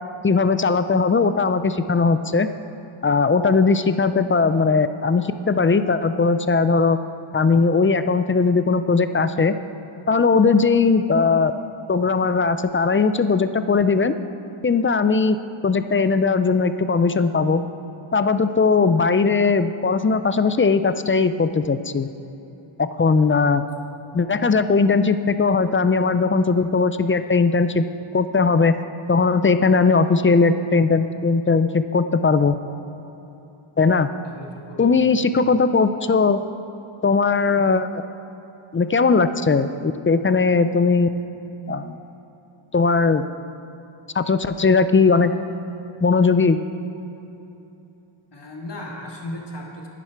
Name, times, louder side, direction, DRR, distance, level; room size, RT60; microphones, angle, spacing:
voice 1, 0.2-2.5 3.0-7.0 7.3-9.6 10.1-11.5 11.9-14.1 14.6-15.4 15.6-17.6 18.1-22.1 22.8-23.6 24.1-27.9 28.1-28.8 29.1-32.5 33.8-34.1 34.8-36.4 37.0-37.9 38.7-41.1 41.7-42.0 42.7-43.2 44.2-45.3 46.0-46.6, left 4 dB, 30° left, 11 dB, 0.3 m, -19 dB
voice 2, 34.2-35.2 48.3-49.9, left 1 dB, 55° left, -1 dB, 1.7 m, -36 dB
10.5 x 10.0 x 4.5 m, 3.0 s
wide cardioid pair, 80°, 49 cm